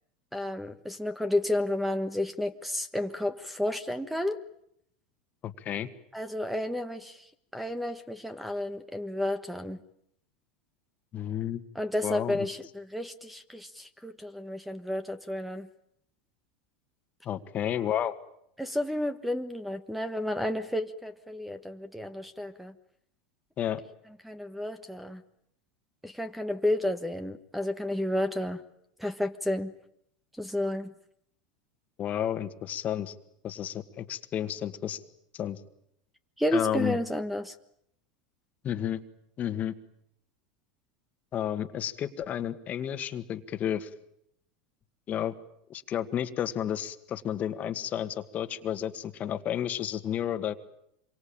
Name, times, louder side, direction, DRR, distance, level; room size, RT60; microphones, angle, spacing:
voice 1, 0.3-4.4 6.1-7.3 7.5-9.8 11.7-15.7 18.6-22.7 24.2-25.2 26.0-28.6 29.0-29.7 30.4-30.9 36.4-37.5, left 1 dB, ahead, 11 dB, 1.4 m, -31 dB
voice 2, 5.4-5.9 11.1-11.6 12.0-12.4 17.3-18.1 23.6-23.8 32.0-33.1 33.4-35.0 35.3-35.6 36.5-37.0 38.6-39.0 39.4-39.7 41.3-43.9 45.1-45.3 45.7-50.5, left 10 dB, 35° left, 10 dB, 1.8 m, -31 dB
26.5 x 24.0 x 8.8 m, 0.75 s
supercardioid pair, 110°, 4 cm